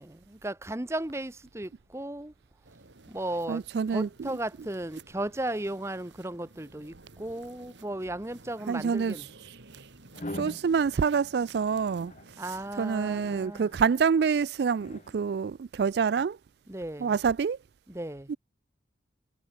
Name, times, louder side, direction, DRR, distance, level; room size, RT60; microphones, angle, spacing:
voice 1, 0.0-2.3 3.1-3.6 3.9-9.3 12.4-13.7 16.7-17.1 17.9-18.3, right 1 dB, 15° right, 0.8 m, -35 dB
sound 1, 2.6-13.5, right 3 dB, 85° right, 2.3 m, -54 dB
voice 2, 3.5-4.1 8.7-9.3 9.7-9.9 10.3-12.4 12.8-16.4 17.0-17.6 18.3-18.4, right 6 dB, 65° right, 0.3 m, -27 dB
sound 2, 10.1-10.7 11.8-12.2 13.1-14.1 14.8-15.2, left 1 dB, 40° left, 1.6 m, -42 dB
head